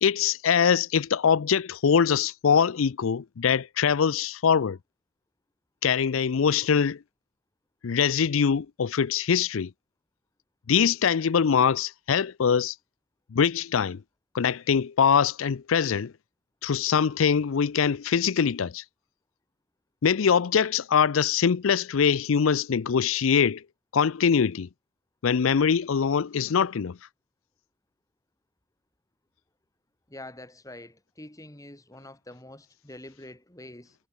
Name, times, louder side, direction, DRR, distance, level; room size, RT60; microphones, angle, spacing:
voice 1, 0.0-4.8 5.8-7.0 7.8-9.7 10.7-12.7 13.3-14.0 14.3-16.1 16.6-18.8 20.0-23.6 23.9-24.7 25.2-27.0, left 7 dB, 75° left, 0.5 m, -23 dB
voice 2, 30.1-34.0, left 1 dB, 15° left, 2.9 m, -45 dB
head